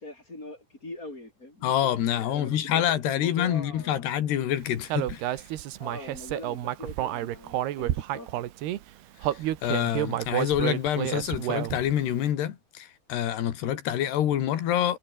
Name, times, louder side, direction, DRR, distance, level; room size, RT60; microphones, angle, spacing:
voice 1, 0.0-4.1 5.8-8.5, left 2 dB, 20° left, 6.7 m, -43 dB
voice 2, 1.6-5.2 9.3-15.0, left 11 dB, 85° left, 4.2 m, -27 dB
Human voice, 4.9-8.8 9.2-11.9, right 13 dB, 80° right, 3.4 m, -30 dB
omnidirectional pair, 4.6 m